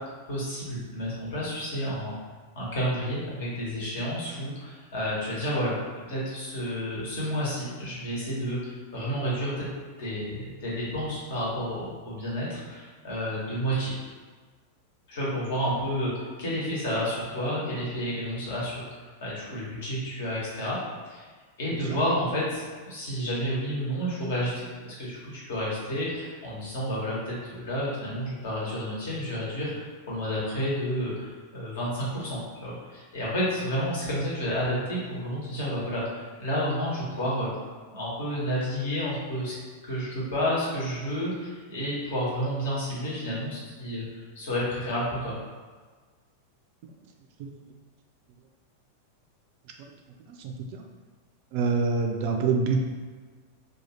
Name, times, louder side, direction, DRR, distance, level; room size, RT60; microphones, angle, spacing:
voice 1, 0.3-2.2 2.5-9.6 10.0-13.9 15.1-20.8 21.1-21.3 21.6-37.5 37.9-39.5 39.8-45.3, equal, 60° left, -6 dB, 1.1 m, -30 dB
voice 2, 50.3-50.8 51.5-52.8, right 4 dB, 50° right, 2 dB, 0.3 m, -26 dB
2.7 x 2.3 x 2.9 m, 1.5 s
figure-of-eight pair, 90°, 0 cm